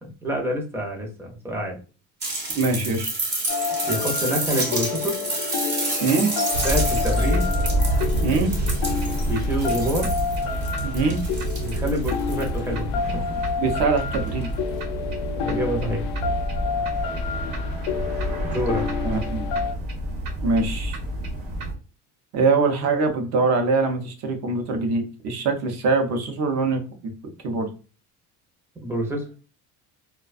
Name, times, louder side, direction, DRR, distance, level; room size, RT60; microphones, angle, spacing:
voice 1, 0.0-1.8 3.9-5.2 6.6-7.5 9.3-10.1 11.6-13.2 15.4-16.1 18.5-18.8 28.8-29.3, equal, 5° right, 1 dB, 0.5 m, -27 dB
sound 1, 2.2-12.6 14.0-14.1, right 2 dB, 30° right, 1.1 m, -30 dB
voice 2, 2.5-3.1 6.0-6.3 8.2-8.5 10.8-11.2 13.6-14.5 19.0-19.4 20.4-21.0 22.3-27.1 27.4-27.7, right 3 dB, 50° right, 5 dB, 0.7 m, -23 dB
sound 2, 3.5-19.7, left 6 dB, 75° left, 0.6 m, -30 dB
sound 3, 6.5-21.7, right 1 dB, 85° right, 1.1 m, -27 dB
2.4 x 2.2 x 2.3 m, 0.35 s
cardioid pair, 155°, 34 cm